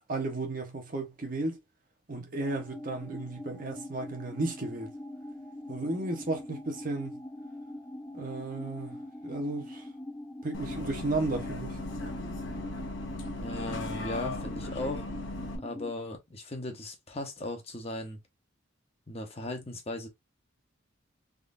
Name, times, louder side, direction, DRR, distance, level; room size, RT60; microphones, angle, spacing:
voice 1, 0.1-1.6 2.1-4.9 5.7-7.2 8.1-9.9 10.4-11.8, right 2 dB, 45° right, 0.9 m, -34 dB
sound 1, 2.4-15.9, left 1 dB, 10° left, 0.4 m, -43 dB
Bus, 10.5-15.6, left 2 dB, 65° left, 1.1 m, -37 dB
voice 2, 13.4-15.0 15.6-18.2 19.1-20.1, left 2 dB, 30° left, 0.9 m, -37 dB
3.7 x 3.1 x 2.5 m
head